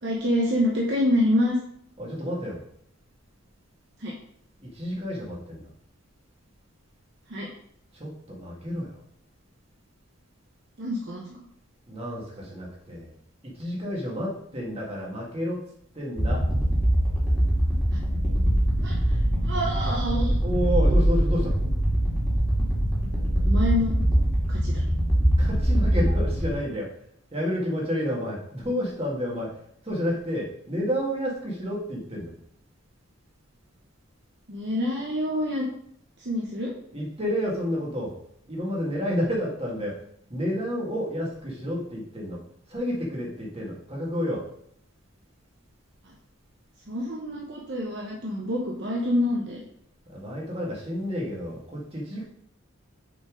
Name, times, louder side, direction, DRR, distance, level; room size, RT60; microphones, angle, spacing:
voice 1, 0.0-1.6 4.0-4.1 7.3-7.5 10.8-11.3 17.9-18.0 18.8-20.4 23.4-24.0 24.5-24.8 34.5-35.7 36.2-36.7 46.0-46.1 46.9-49.6, left 1 dB, 50° right, -3 dB, 1.0 m, -27 dB
voice 2, 2.0-2.6 4.6-5.7 7.9-9.0 11.9-13.1 13.6-15.6 15.9-16.4 20.4-21.5 25.4-26.9 27.3-29.5 29.8-32.3 36.9-38.1 38.5-39.9 40.3-42.4 42.7-44.4 50.1-52.2, equal, 25° right, -4 dB, 2.0 m, -30 dB
sound 1, 16.2-26.5, right 1 dB, ahead, 2.3 m, -23 dB
6.7 x 4.5 x 5.2 m, 0.69 s
head